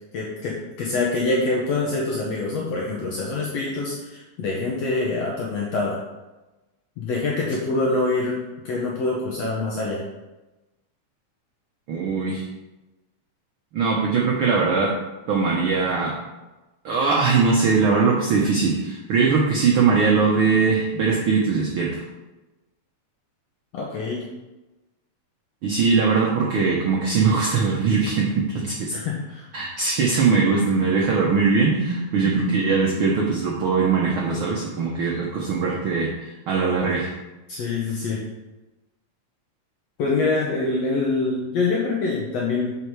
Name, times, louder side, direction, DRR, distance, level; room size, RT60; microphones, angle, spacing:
voice 1, 0.1-6.0 7.0-8.4 8.7-10.0 23.7-24.2 28.9-29.5 37.5-38.2 40.0-42.8, left 3 dB, 65° left, -3 dB, 1.9 m, -25 dB
voice 2, 11.9-12.4 13.7-14.9 15.3-16.1 16.8-22.0 25.6-28.9 29.5-37.1, right 4 dB, 70° right, -2 dB, 1.3 m, -21 dB
6.7 x 5.5 x 4.7 m, 1.1 s
omnidirectional pair, 3.5 m